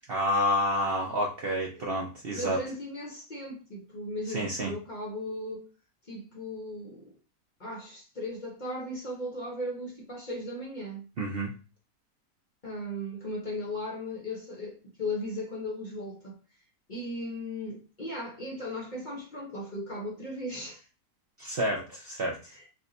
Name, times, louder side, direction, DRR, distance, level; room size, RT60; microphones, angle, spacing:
voice 1, 0.1-2.6 4.3-4.7 11.2-11.5 21.4-22.5, equal, 60° right, 0.6 m, -29 dB
voice 2, 2.3-5.7 6.0-7.1 7.6-11.1 12.6-16.4 16.9-20.9 22.5-22.7, left 1 dB, 40° left, 0.9 m, -37 dB
3.5 x 2.2 x 3.7 m
omnidirectional pair, 1.6 m